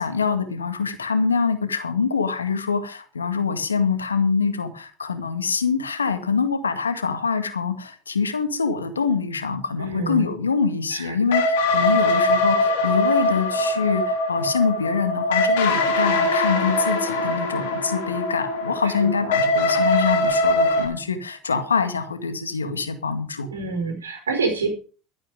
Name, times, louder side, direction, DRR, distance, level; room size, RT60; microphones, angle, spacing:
voice 1, 0.0-23.5, left 5 dB, 90° left, 9 dB, 1.9 m, -24 dB
voice 2, 9.8-10.3 10.9-11.1 23.5-24.7, right 4 dB, 85° right, 5 dB, 4.7 m, -26 dB
sound 1, 11.3-20.9, left 2 dB, 70° left, 3.5 m, -22 dB
13.0 x 11.0 x 5.0 m, 0.37 s
hypercardioid pair, 75°, 0 cm